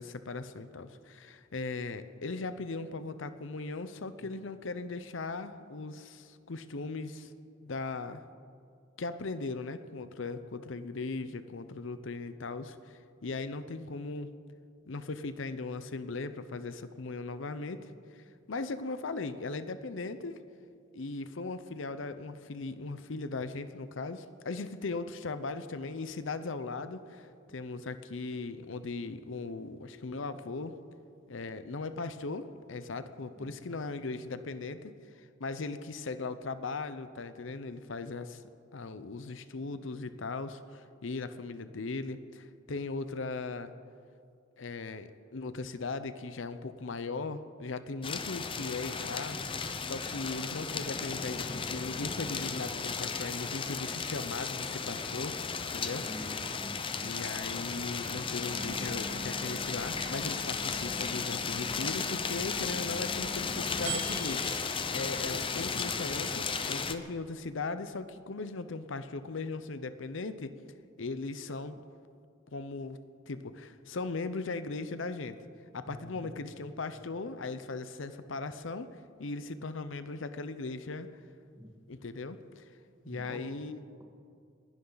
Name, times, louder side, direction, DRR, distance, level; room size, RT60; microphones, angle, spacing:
voice 1, 0.0-7.3 7.6-8.2 9.0-14.3 14.9-20.4 20.9-30.8 31.3-38.4 38.7-43.7 44.6-49.4 49.8-56.1 57.0-70.5 71.0-71.8 72.5-73.0 73.3-75.4 75.7-81.1 81.9-82.7 83.1-83.8, left 3 dB, 75° left, 11 dB, 0.7 m, -38 dB
sound 1, 48.0-67.0, left 5 dB, 25° left, 0.7 m, -35 dB
voice 2, 55.6-57.1 65.3-66.0 75.9-76.4 81.5-81.8 83.0-83.6, equal, 10° right, 1 dB, 1.9 m, -48 dB
sound 2, 58.4-67.3, right 2 dB, 35° right, 2.5 m, -45 dB
30.0 x 11.5 x 4.0 m, 2.3 s
head